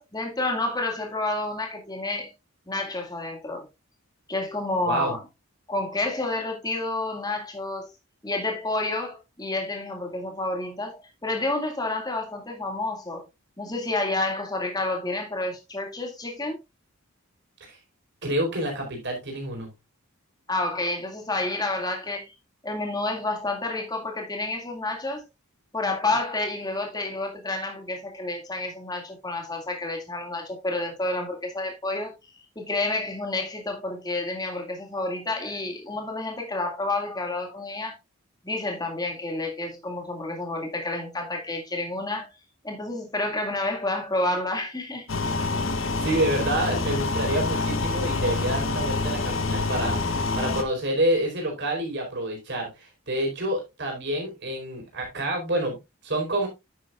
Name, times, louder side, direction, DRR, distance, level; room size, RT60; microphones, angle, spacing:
voice 1, 0.0-2.3 2.7-3.7 4.3-5.2 5.7-7.9 8.2-13.2 13.6-16.6 20.5-22.3 22.6-25.2 25.7-32.2 32.6-37.9 38.4-42.3 42.6-45.1, left 2 dB, 20° left, 2.1 m, -29 dB
voice 2, 4.9-5.2 17.6-17.8 18.2-19.7 45.8-50.0 50.3-56.5, right 1 dB, 50° right, 4.5 m, -28 dB
sound 1, 45.1-50.6, left 3 dB, 60° left, 1.0 m, -26 dB
10.0 x 8.7 x 2.4 m
head